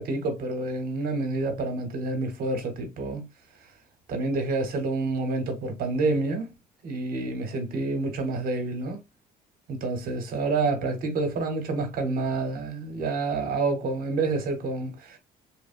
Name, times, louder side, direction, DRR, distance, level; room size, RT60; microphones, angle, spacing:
voice 1, 0.0-3.3 4.1-6.5 6.8-9.0 9.7-15.2, right 3 dB, 60° right, 0.8 m, -28 dB
3.0 x 2.0 x 2.4 m
cardioid pair, 110°, 17 cm